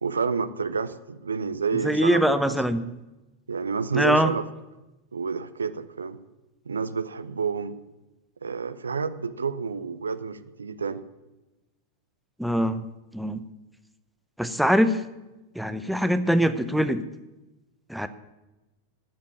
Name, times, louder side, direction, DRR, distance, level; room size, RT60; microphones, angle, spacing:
voice 1, 0.0-2.6 3.5-4.4 5.1-6.2 6.7-7.8 8.4-11.0, right 5 dB, 75° right, 12 dB, 0.6 m, -29 dB
voice 2, 1.8-2.9 3.9-4.3 12.4-12.9 13.1-13.4 14.4-15.0 15.6-17.0 17.9-18.1, equal, ahead, 10 dB, 0.8 m, -23 dB
10.5 x 7.5 x 8.8 m, 1.0 s
figure-of-eight pair, 90°, 0 cm